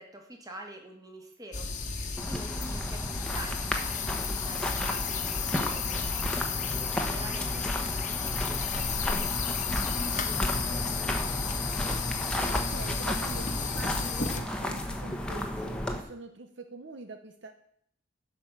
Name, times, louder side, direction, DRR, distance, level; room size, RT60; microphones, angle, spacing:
voice 1, 0.0-11.2, right 1 dB, 20° right, 2 dB, 2.0 m, -47 dB
sound 1, 1.5-14.4, left 5 dB, 40° left, 1.3 m, -33 dB
sound 2, 2.2-16.0, left 1 dB, 5° left, 1.2 m, -33 dB
voice 2, 12.4-17.5, right 3 dB, 65° right, 7 dB, 0.9 m, -45 dB
11.0 x 5.4 x 7.5 m, 0.66 s
head